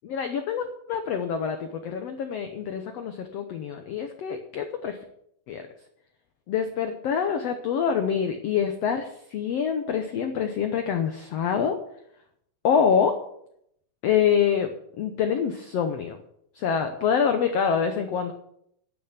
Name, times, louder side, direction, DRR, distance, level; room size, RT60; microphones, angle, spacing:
voice 1, 0.0-5.0 5.5-5.6 6.5-11.8 12.6-13.1 14.0-14.7 15.0-16.2 16.5-18.3, left 7 dB, 85° left, 7 dB, 1.4 m, -26 dB
10.5 x 6.9 x 8.3 m, 0.71 s
omnidirectional pair, 4.3 m